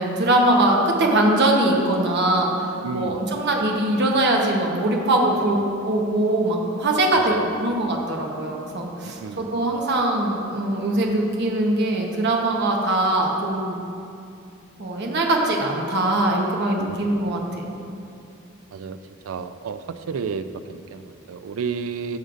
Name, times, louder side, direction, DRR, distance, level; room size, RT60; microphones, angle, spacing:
voice 1, 0.0-5.6 5.9-7.3 7.6-13.8 14.8-17.7, right 1 dB, 55° right, 0 dB, 1.0 m, -22 dB
voice 2, 2.8-3.4 7.1-7.5 9.0-9.5 16.8-17.0 18.7-19.0 19.2-22.2, right 5 dB, 85° right, 11 dB, 0.4 m, -31 dB
14.0 x 6.4 x 2.5 m, 2.6 s
head